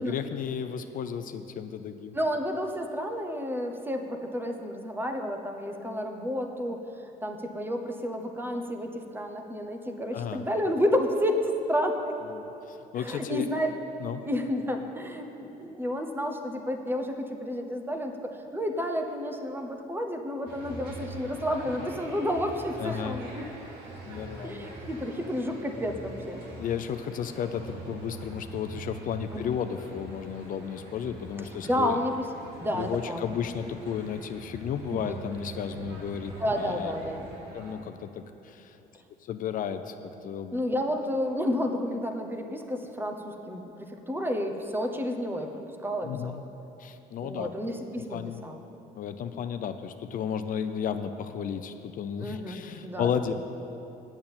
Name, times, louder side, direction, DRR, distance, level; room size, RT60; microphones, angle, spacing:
voice 1, 0.0-2.2 10.1-10.5 12.3-13.5 14.0-14.2 22.8-23.2 24.0-24.7 26.6-32.1 32.7-36.9 37.5-38.8 39.2-39.9 40.2-40.6 46.0-46.4 46.8-47.5 48.0-48.4 48.9-53.3, left 8 dB, 55° left, 9 dB, 0.5 m, -33 dB
voice 2, 2.1-6.8 7.2-12.2 13.0-13.7 14.2-23.5 24.4-26.4 29.3-29.5 31.6-32.1 32.6-33.2 34.9-35.2 36.4-37.3 40.5-46.3 47.2-48.6 52.2-53.1, equal, 10° right, 5 dB, 0.9 m, -31 dB
sound 1, 20.5-37.7, right 2 dB, 80° right, 2.2 m, -43 dB
8.6 x 7.2 x 8.8 m, 2.9 s
cardioid pair, 110°, 17 cm